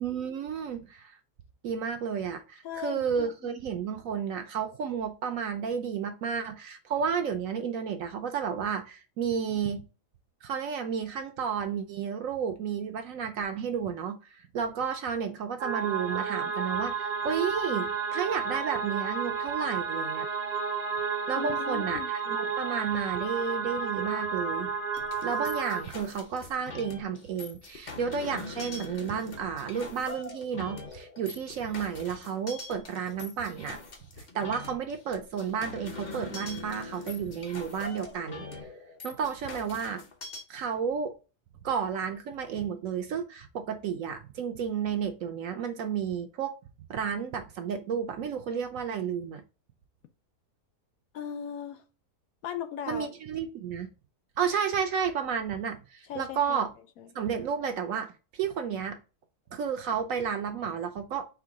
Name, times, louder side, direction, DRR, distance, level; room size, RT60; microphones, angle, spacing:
voice 1, 0.0-1.2 1.6-9.9 10.4-20.3 21.3-22.0 22.3-24.7 25.2-33.8 34.2-38.7 39.0-40.0 40.5-41.1 41.6-46.5 46.9-49.4 52.9-53.9 54.4-56.7 57.1-59.0 59.5-61.3, right 7 dB, 70° right, 0.9 m, -32 dB
voice 2, 2.6-3.3 21.4-22.1 51.1-51.8 52.4-53.1 56.0-56.6 57.0-57.1, left 9 dB, 70° left, 0.9 m, -37 dB
sound 1, 15.6-25.8, right 5 dB, 90° right, 1.4 m, -31 dB
sound 2, 24.9-40.4, left 3 dB, 40° left, 0.8 m, -43 dB
4.6 x 2.2 x 4.6 m
omnidirectional pair, 1.7 m